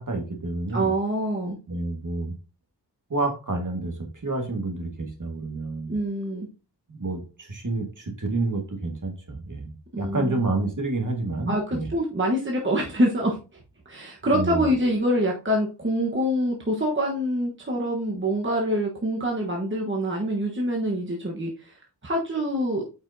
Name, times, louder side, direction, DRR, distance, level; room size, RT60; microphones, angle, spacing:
voice 1, 0.0-0.9 1.7-2.4 3.1-5.9 6.3-6.4 6.9-11.9 14.3-14.7, right 2 dB, 50° right, 3 dB, 1.9 m, -29 dB
voice 2, 0.7-1.6 5.9-6.5 9.9-10.4 11.5-13.4 13.8-21.8 22.0-22.8, equal, 30° right, -1 dB, 1.3 m, -25 dB
8.4 x 5.3 x 2.7 m, 0.33 s
wide cardioid pair, 95°, 41 cm